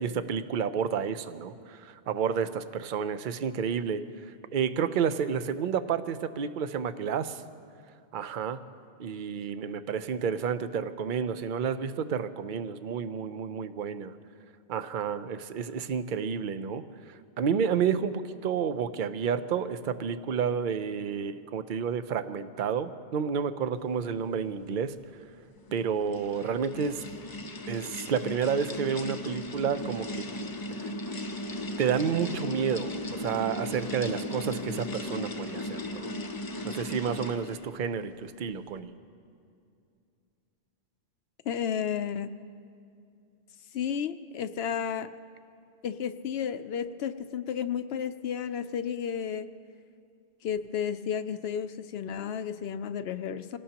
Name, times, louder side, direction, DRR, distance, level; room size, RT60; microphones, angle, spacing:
voice 1, 0.0-7.4 8.1-8.6 9.0-14.1 14.7-24.9 25.7-27.0 27.7-30.2 31.8-36.1 36.6-38.9, right 7 dB, 55° right, 11 dB, 0.7 m, -30 dB
sound 1, 25.6-37.7, left 1 dB, 25° left, 0.5 m, -37 dB
voice 2, 41.5-42.3 43.7-45.1 45.8-49.5 50.4-53.6, left 8 dB, 75° left, 11 dB, 0.8 m, -32 dB
26.5 x 18.0 x 2.9 m, 2.5 s
omnidirectional pair, 1.1 m